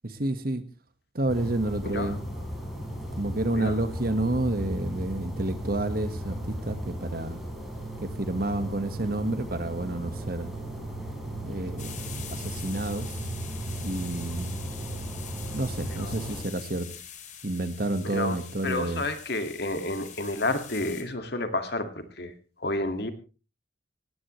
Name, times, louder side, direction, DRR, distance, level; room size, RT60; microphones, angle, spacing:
voice 1, 0.0-0.6 1.1-2.3 3.2-7.4 8.0-10.5 11.4-13.1 13.8-14.7 15.5-16.9 17.4-19.1, right 2 dB, 55° right, 11 dB, 1.6 m, -30 dB
sound 1, 1.3-16.4, right 1 dB, ahead, 4.5 m, -36 dB
sound 2, 11.8-21.0, left 8 dB, 40° left, 2.9 m, -44 dB
voice 2, 18.6-22.3 22.6-23.1, left 2 dB, 60° left, 8 dB, 2.2 m, -30 dB
19.0 x 17.5 x 3.2 m, 0.32 s
head